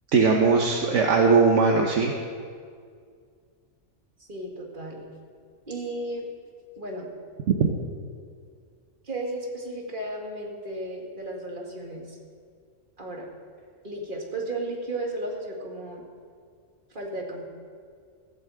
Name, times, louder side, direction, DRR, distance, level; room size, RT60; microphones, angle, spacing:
voice 1, 0.1-2.1, right 4 dB, 65° right, 2 dB, 1.3 m, -19 dB
voice 2, 4.2-5.0 5.7-6.3 6.8-7.2 9.0-12.2 13.0-13.3 13.8-16.0 16.9-17.4, right 1 dB, 40° right, -1 dB, 2.2 m, -34 dB
14.5 x 8.3 x 7.8 m, 2.1 s
omnidirectional pair, 1.4 m